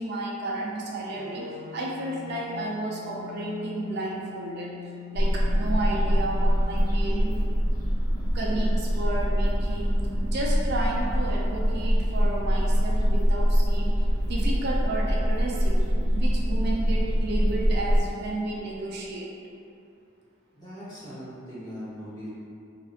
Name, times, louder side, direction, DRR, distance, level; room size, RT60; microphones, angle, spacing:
voice 1, 0.0-1.4 1.7-4.8 5.1-7.4 8.3-13.9 14.3-15.8 16.1-19.3, right 2 dB, 55° right, -3 dB, 0.4 m, -32 dB
sound 1, 1.2-7.2, left 7 dB, 75° left, 0.3 m, -42 dB
sound 2, 5.1-18.0, equal, 50° left, 1.5 m, -24 dB
voice 2, 20.5-22.3, equal, 20° left, -13 dB, 1.2 m, -40 dB
3.2 x 2.8 x 2.7 m, 2.5 s
head